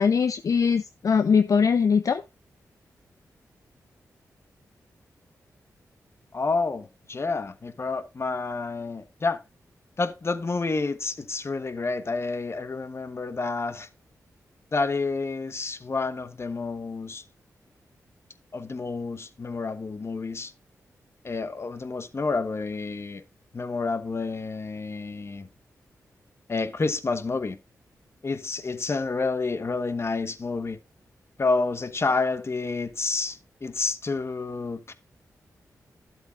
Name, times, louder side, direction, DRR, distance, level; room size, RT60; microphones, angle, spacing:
voice 1, 0.0-2.2, left 6 dB, 60° left, 0.6 m, -21 dB
voice 2, 6.3-9.4 10.0-13.9 14.7-17.2 18.5-20.5 21.2-23.2 23.5-25.5 26.5-27.6 28.2-30.8 31.4-34.9, left 3 dB, 45° left, 1.1 m, -29 dB
12.5 x 7.8 x 2.4 m
cardioid pair, 55°, 6 cm